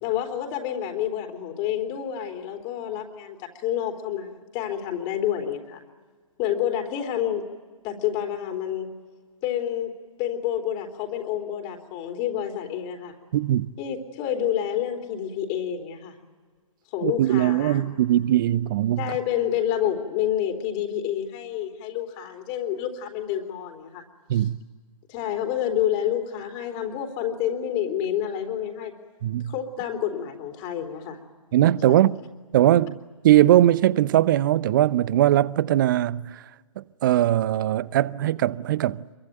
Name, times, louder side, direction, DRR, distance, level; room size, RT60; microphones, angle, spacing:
voice 1, 0.0-5.8 6.4-7.5 7.8-8.9 9.4-9.9 10.2-13.2 13.8-16.2 16.9-17.8 19.0-24.0 24.3-24.5 25.1-28.9 29.5-31.2, left 10 dB, 25° left, 3.6 m, -28 dB
voice 2, 13.3-13.7 17.0-19.1 24.3-24.6 29.2-29.5 31.5-32.2 32.5-36.4 36.8-39.0, right 13 dB, 35° right, 0.7 m, -20 dB
27.0 x 23.5 x 9.2 m
figure-of-eight pair, 130°, 18 cm